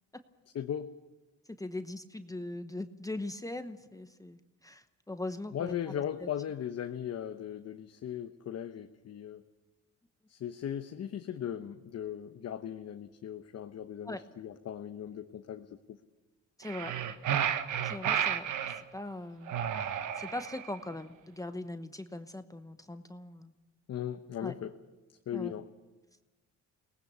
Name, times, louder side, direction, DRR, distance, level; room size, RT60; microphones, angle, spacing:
voice 1, 0.5-0.9 5.5-9.4 10.3-16.0 23.9-24.7 25.3-25.7, left 9 dB, 55° left, 7 dB, 1.0 m, -38 dB
voice 2, 1.5-5.8 6.2-6.3 14.0-14.2 16.6-17.0 17.8-18.5 18.9-19.5 20.2-23.5 24.4-24.5 25.3-25.5, left 2 dB, 10° left, 9 dB, 1.0 m, -40 dB
sound 1, 16.6-18.8 19.5-20.7, right 9 dB, 75° right, 1.3 m, -32 dB
22.5 x 19.0 x 6.9 m, 1.2 s
cardioid pair, 90°, 30 cm